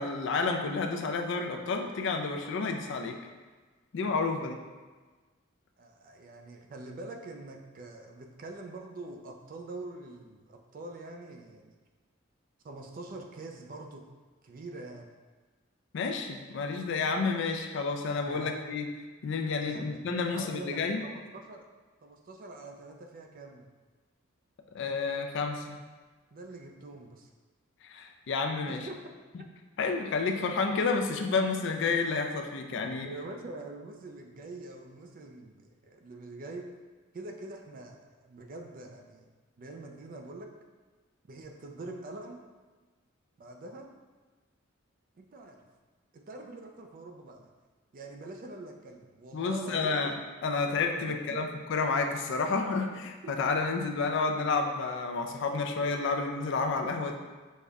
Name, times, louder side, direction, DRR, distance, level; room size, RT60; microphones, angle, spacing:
voice 1, 0.0-3.2 3.9-4.6 15.9-18.8 19.2-21.0 24.7-25.8 27.8-28.9 29.8-33.1 49.3-50.1 50.4-57.2, left 4 dB, 60° left, 4 dB, 0.4 m, -30 dB
voice 2, 4.3-4.6 5.8-11.7 12.6-14.0 14.4-15.1 18.2-18.6 19.6-21.7 22.0-23.7 26.3-27.3 28.7-29.0 33.0-36.6 37.1-39.3 39.6-40.5 41.3-42.4 43.4-43.9 45.2-45.6 46.1-47.5 47.9-49.9 50.9-51.5 53.2-53.3 55.8-55.9, right 2 dB, 45° right, 3 dB, 0.4 m, -44 dB
5.3 x 2.1 x 3.5 m, 1.3 s
head